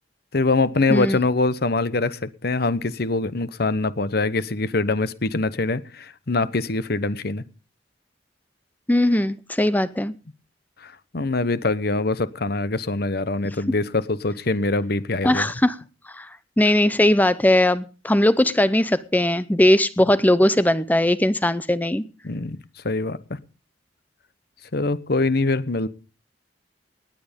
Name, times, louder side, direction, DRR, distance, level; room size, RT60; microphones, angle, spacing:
voice 1, 0.3-7.4 10.8-15.5 22.2-22.6 22.8-23.2 24.7-25.9, left 3 dB, 60° left, 1.0 m, -24 dB
voice 2, 8.9-10.1 15.2-15.8 16.1-16.3 16.6-22.0, left 1 dB, 10° left, 0.6 m, -19 dB
19.0 x 9.5 x 5.2 m
head